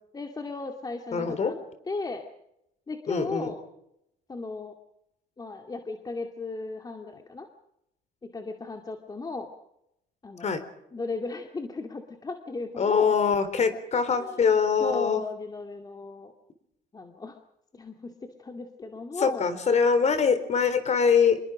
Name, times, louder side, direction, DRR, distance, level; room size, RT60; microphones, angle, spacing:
voice 1, 0.1-1.6 1.8-2.2 2.9-3.6 4.3-4.7 5.4-7.5 8.2-9.5 10.2-10.5 10.9-13.2 13.9-14.5 14.8-16.3 16.9-17.4 17.7-19.5, left 3 dB, 20° left, 4 dB, 2.4 m, -36 dB
voice 2, 1.1-1.5 3.1-3.5 10.4-10.6 12.8-15.2 19.2-21.4, left 6 dB, 40° left, 11 dB, 4.0 m, -23 dB
27.0 x 22.0 x 5.1 m, 0.81 s
cardioid pair, 110°, 17 cm